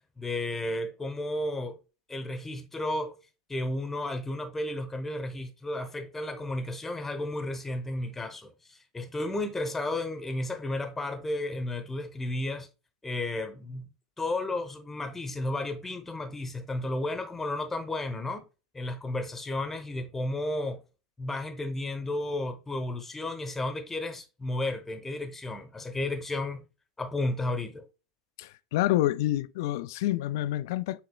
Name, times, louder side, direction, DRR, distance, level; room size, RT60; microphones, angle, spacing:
voice 1, 0.2-1.8 2.1-3.2 3.5-12.7 13.0-13.9 14.2-18.4 18.7-20.8 21.2-26.6 27.0-27.8, left 2 dB, 10° left, 0.8 m, -33 dB
voice 2, 28.4-31.0, left 14 dB, 60° left, 0.3 m, -28 dB
7.7 x 2.9 x 2.2 m
figure-of-eight pair, 80°, 2 cm